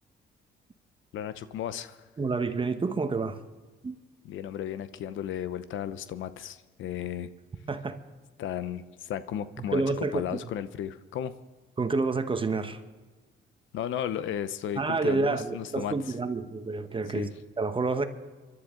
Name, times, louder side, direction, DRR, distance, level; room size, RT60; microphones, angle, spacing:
voice 1, 1.1-2.0 4.2-7.3 8.4-11.3 13.7-15.9 17.1-17.3, left 10 dB, 80° left, 0.8 m, -34 dB
voice 2, 2.2-3.4 3.8-4.0 7.7-8.0 9.7-10.4 11.8-12.8 14.8-18.1, right 3 dB, 25° right, 1.1 m, -29 dB
27.5 x 11.5 x 3.8 m
cardioid pair, 90°, 20 cm